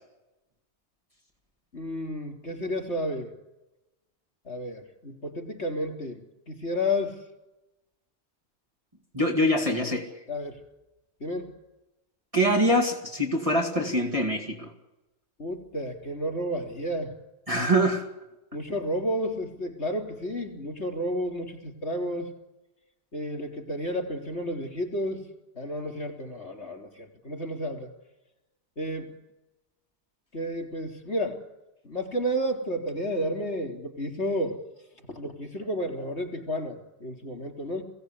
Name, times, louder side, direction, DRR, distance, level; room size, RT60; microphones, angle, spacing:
voice 1, 1.7-3.3 4.5-7.2 10.3-10.6 11.2-11.5 15.4-17.1 18.5-22.3 23.1-25.3 25.6-27.9 28.8-29.1 30.3-31.4 31.8-34.6 35.1-37.8, equal, 85° left, 2 dB, 4.1 m, -31 dB
voice 2, 9.1-10.1 12.3-14.7 17.5-18.0, equal, 30° right, 0 dB, 2.3 m, -24 dB
22.0 x 17.0 x 8.3 m, 0.99 s
omnidirectional pair, 1.1 m